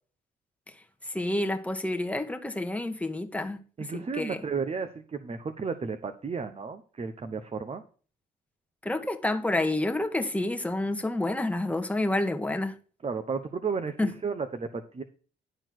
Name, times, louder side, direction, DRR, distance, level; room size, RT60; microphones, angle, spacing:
voice 1, 1.0-3.6 3.9-4.4 8.8-12.8 14.0-14.1, left 2 dB, 5° left, 1.4 m, -29 dB
voice 2, 3.8-7.8 13.0-15.0, right 5 dB, 35° right, 1.0 m, -33 dB
11.5 x 4.4 x 6.0 m
cardioid pair, 70°, 18 cm